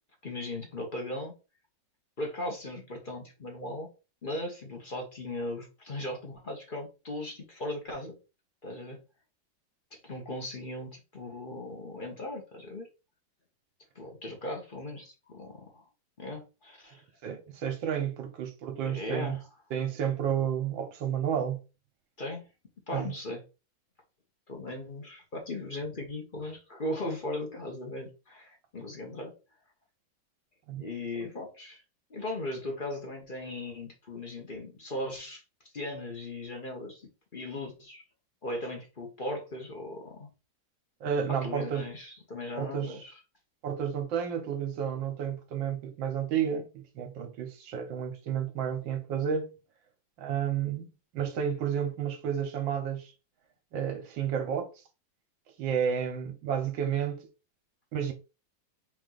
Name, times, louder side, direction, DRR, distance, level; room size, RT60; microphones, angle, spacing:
voice 1, 0.2-1.3 2.2-3.9 4.2-8.1 8.6-9.0 9.9-12.9 13.9-15.9 16.2-17.0 18.9-19.4 22.2-22.4 22.9-23.4 24.5-29.3 30.8-31.8 32.1-35.4 35.7-38.0 38.4-40.3 41.3-43.1, left 1 dB, 35° left, 1.0 m, -38 dB
voice 2, 17.2-19.4 19.7-21.6 22.9-23.1 30.7-30.8 31.2-31.3 41.0-41.9 42.5-43.0 43.6-49.5 50.2-53.1 53.7-54.7 55.6-57.3 57.9-58.1, right 8 dB, 75° right, 1.7 m, -31 dB
4.7 x 2.8 x 4.0 m
omnidirectional pair, 2.1 m